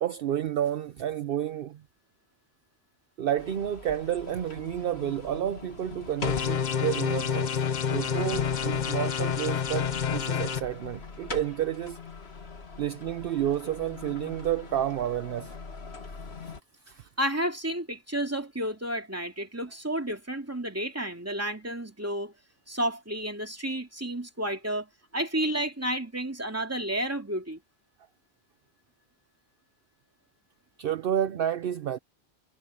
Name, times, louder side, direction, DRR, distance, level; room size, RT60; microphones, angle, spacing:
voice 1, 0.0-1.8 3.2-7.6 7.9-12.0 12.8-15.5 16.9-17.0 30.8-32.0, right 10 dB, 65° right, 0.8 m, -30 dB
sound 1, 3.4-16.6, left 5 dB, 75° left, 2.2 m, -42 dB
sound 2, 6.2-10.6, left 7 dB, 45° left, 0.8 m, -28 dB
voice 2, 17.2-22.3 22.7-24.9 25.1-27.6, right 1 dB, 15° right, 2.5 m, -31 dB
omnidirectional pair, 1.1 m